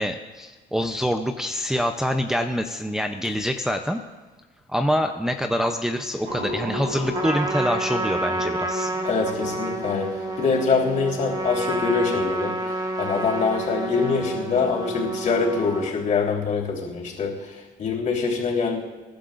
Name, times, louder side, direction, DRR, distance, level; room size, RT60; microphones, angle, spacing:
voice 1, 0.0-4.0 4.7-8.9, equal, 5° right, 4 dB, 0.6 m, -25 dB
sound 1, 6.3-12.1, equal, 75° right, 3.4 m, -36 dB
Trumpet, 7.1-15.9, right 2 dB, 20° right, 1.5 m, -29 dB
voice 2, 8.9-18.8, left 5 dB, 50° left, -2 dB, 3.6 m, -24 dB
26.0 x 11.5 x 2.6 m, 1.3 s
cardioid pair, 110°, 17 cm